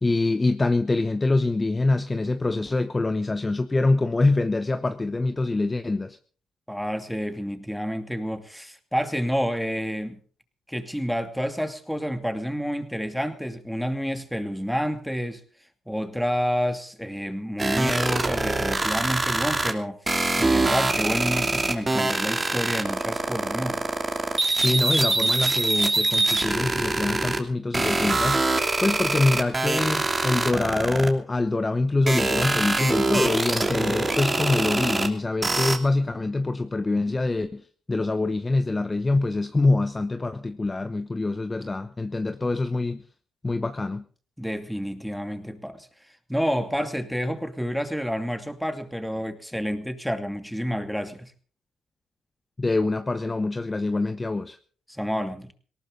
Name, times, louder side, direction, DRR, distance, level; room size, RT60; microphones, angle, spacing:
voice 1, 0.0-6.2 24.6-28.4 28.8-37.6 37.9-43.0 43.4-44.0 52.6-54.6, left 2 dB, 20° left, 1.0 m, -25 dB
voice 2, 6.7-10.2 10.7-15.4 15.9-20.0 20.4-23.8 42.3-42.4 44.4-45.9 46.3-51.3 54.9-55.5, equal, ahead, 2.5 m, -29 dB
sound 1, 17.6-19.7 20.1-27.4 27.7-31.1 32.1-35.1 35.4-35.8, right 2 dB, 20° right, 2.8 m, -23 dB
19.0 x 18.0 x 3.9 m
cardioid pair, 90°, 0 cm